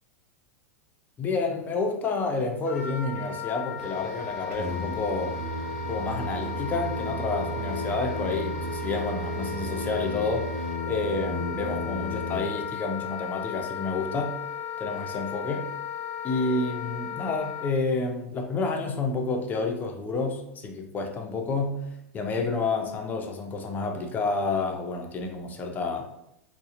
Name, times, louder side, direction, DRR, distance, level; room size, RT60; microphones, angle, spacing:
voice 1, 1.2-5.4 5.9-10.5 10.9-14.4 14.8-15.7 16.2-26.1, left 3 dB, 20° left, 3 dB, 0.4 m, -29 dB
Wind instrument woodwind instrument, 2.6-17.7, left 7 dB, 85° left, 0.5 m, -36 dB
sound 1, 3.8-10.8, right 1 dB, 5° right, 0.7 m, -47 dB
Singing, 4.5-12.4, equal, 70° right, 0.6 m, -33 dB
2.7 x 2.0 x 2.4 m, 0.79 s
hypercardioid pair, 115°, 8 cm